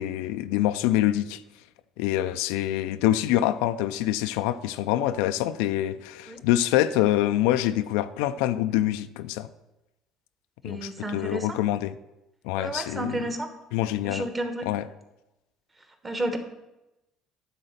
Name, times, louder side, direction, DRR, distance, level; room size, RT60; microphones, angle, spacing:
voice 1, 0.0-1.4 2.0-9.5 10.6-12.0 12.4-13.2 13.7-14.3 14.7-14.9, left 13 dB, 90° left, 0.4 m, -25 dB
voice 2, 10.6-11.6 12.6-13.5 14.0-14.7 16.0-16.4, right 1 dB, 20° right, 1.2 m, -31 dB
9.8 x 3.9 x 6.6 m
cardioid pair, 105°, 0 cm